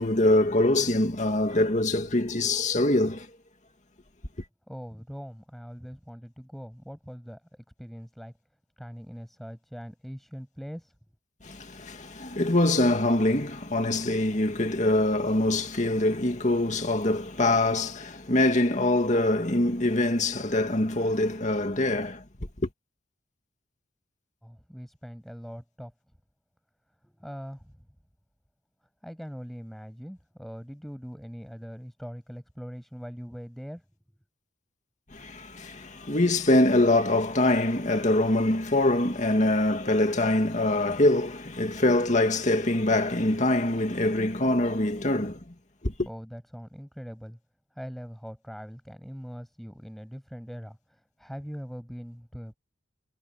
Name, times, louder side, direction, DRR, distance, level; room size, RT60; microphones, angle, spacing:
voice 1, 0.0-3.3 11.4-22.2 22.6-22.7 35.1-45.4 45.8-45.9, left 1 dB, 40° left, 2.3 m, -24 dB
voice 2, 4.7-7.4 7.8-8.3 8.8-10.9 24.4-25.9 27.0-27.7 29.0-33.8 46.1-47.4 47.7-52.6, equal, ahead, 7.8 m, -41 dB
head